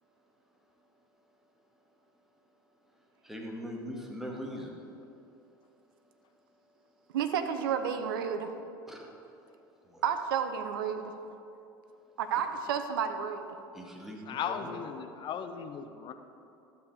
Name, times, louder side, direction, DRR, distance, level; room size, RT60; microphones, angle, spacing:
voice 1, 2.9-4.7 6.1-6.2 8.9-9.1 9.8-10.0 13.7-14.7, equal, 5° right, -1 dB, 1.9 m, -41 dB
voice 2, 7.1-8.5 10.0-11.2 12.2-13.5, right 7 dB, 70° right, 8 dB, 0.7 m, -31 dB
voice 3, 14.3-16.1, left 7 dB, 40° left, 8 dB, 0.8 m, -37 dB
12.5 x 7.1 x 4.9 m, 2.7 s
figure-of-eight pair, 70°, 12 cm